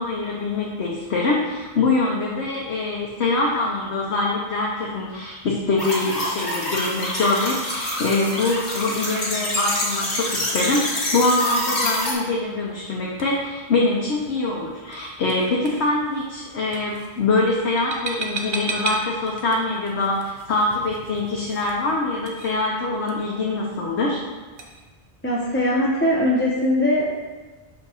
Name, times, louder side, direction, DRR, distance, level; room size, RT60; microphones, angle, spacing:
voice 1, 0.0-24.2, left 2 dB, 80° left, -3 dB, 1.0 m, -24 dB
sound 1, 5.4-24.8, right 3 dB, 55° right, 0.9 m, -39 dB
sound 2, 5.8-12.1, left 1 dB, 60° left, 1.4 m, -26 dB
voice 2, 25.2-27.1, left 1 dB, 15° left, -5 dB, 0.6 m, -20 dB
5.9 x 2.9 x 5.5 m, 1.3 s
omnidirectional pair, 1.1 m